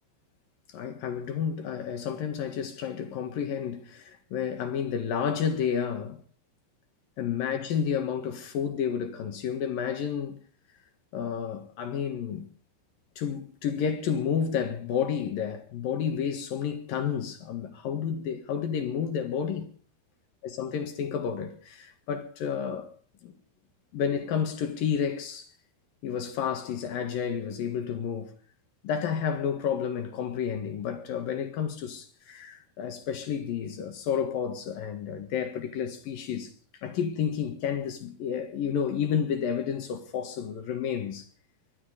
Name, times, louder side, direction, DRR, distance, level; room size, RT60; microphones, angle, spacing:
voice 1, 0.7-6.2 7.2-10.4 11.1-12.5 13.2-19.7 20.4-22.9 23.2-23.4 23.9-25.5 26.0-28.3 28.8-36.5 36.8-41.3, left 7 dB, 60° left, 2.7 m, -31 dB
22.5 x 12.5 x 5.1 m
omnidirectional pair, 5.9 m